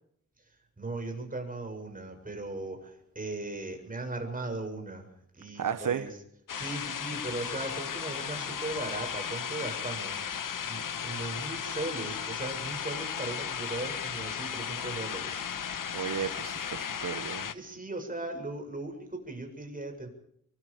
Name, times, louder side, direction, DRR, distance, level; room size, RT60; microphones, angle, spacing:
voice 1, 0.4-5.1 5.4-6.1 6.5-15.4 17.5-20.1, right 2 dB, 25° right, 3 dB, 7.5 m, -38 dB
voice 2, 5.6-6.1 15.9-17.5, right 7 dB, 85° right, 10 dB, 1.2 m, -33 dB
sound 1, 6.5-17.5, left 7 dB, 90° left, 1.3 m, -35 dB
25.5 x 24.0 x 5.2 m, 0.69 s
wide cardioid pair, 105°, 31 cm